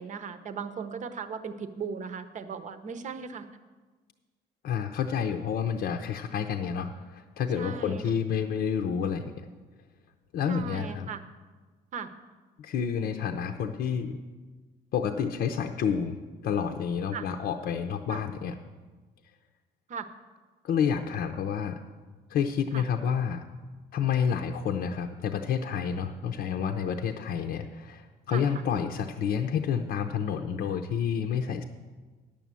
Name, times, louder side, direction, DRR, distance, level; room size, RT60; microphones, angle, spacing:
voice 1, 0.0-3.4 7.5-8.2 10.5-11.2 11.9-12.1 17.1-17.3 18.1-18.2 19.9-20.1 22.7-22.8 28.3-28.4, right 6 dB, 45° right, 10 dB, 0.8 m, -37 dB
voice 2, 4.6-9.5 10.3-11.1 12.6-14.2 14.9-18.5 20.6-21.8 22.3-23.4 23.9-31.6, left 7 dB, 65° left, 5 dB, 0.6 m, -29 dB
10.0 x 7.0 x 7.4 m, 1.3 s
cardioid pair, 110°, 17 cm